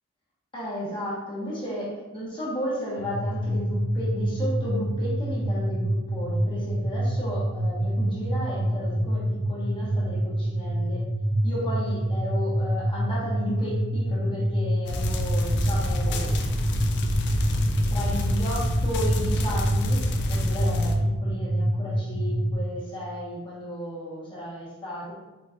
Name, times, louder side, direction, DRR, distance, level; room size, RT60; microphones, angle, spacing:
voice 1, 0.5-11.1 11.4-16.4 17.9-25.1, equal, 20° left, -6 dB, 1.3 m, -34 dB
sound 1, 3.0-22.5, equal, 40° right, 0.8 m, -26 dB
sound 2, 14.9-21.0, left 1 dB, 50° left, 0.4 m, -29 dB
4.2 x 3.8 x 2.5 m, 1.1 s
head